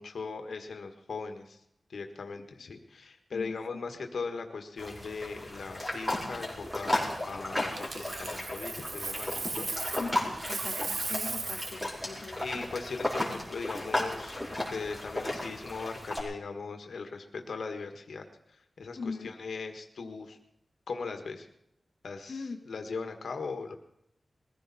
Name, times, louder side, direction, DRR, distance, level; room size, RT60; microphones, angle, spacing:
voice 1, 0.0-1.6 1.9-9.7 12.4-20.4 20.9-21.5 22.0-23.8, left 4 dB, 85° left, 5 dB, 1.5 m, -39 dB
sound 1, 4.8-16.2, left 1 dB, 10° right, 4.7 m, -35 dB
Coin (dropping), 7.7-10.1 10.4-11.8 14.7-14.9, right 3 dB, 55° right, 1.0 m, -36 dB
voice 2, 10.0-12.7 18.9-19.3 22.3-22.6, left 4 dB, 55° left, 2 dB, 1.5 m, -41 dB
21.5 x 15.0 x 4.2 m, 0.79 s
wide cardioid pair, 125°, 0 cm